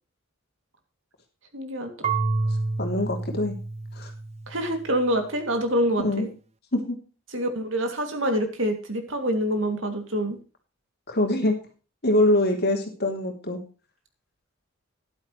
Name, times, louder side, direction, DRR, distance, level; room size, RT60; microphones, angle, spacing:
voice 1, 1.5-1.9 4.5-6.3 7.3-10.4, equal, 65° right, 5 dB, 2.7 m, -26 dB
Marimba xylophone / Wood, 2.0-4.9, right 3 dB, 30° right, 0.6 m, -29 dB
voice 2, 2.8-3.6 4.0-4.1 6.0-6.3 6.7-7.0 11.1-11.6 12.0-13.6, left 1 dB, 50° left, 3 dB, 3.2 m, -24 dB
13.0 x 11.5 x 3.2 m, 0.36 s
head